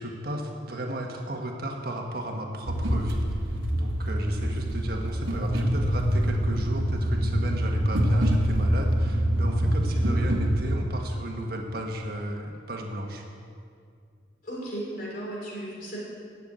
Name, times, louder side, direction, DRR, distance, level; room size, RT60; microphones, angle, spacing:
voice 1, 0.0-13.2, right 1 dB, 50° right, 1 dB, 1.5 m, -34 dB
sound 1, 2.7-10.6, equal, 85° right, 1.5 m, -25 dB
voice 2, 10.0-10.3 14.4-16.0, right 1 dB, 45° left, -4 dB, 3.6 m, -36 dB
11.5 x 7.3 x 8.8 m, 2.3 s
head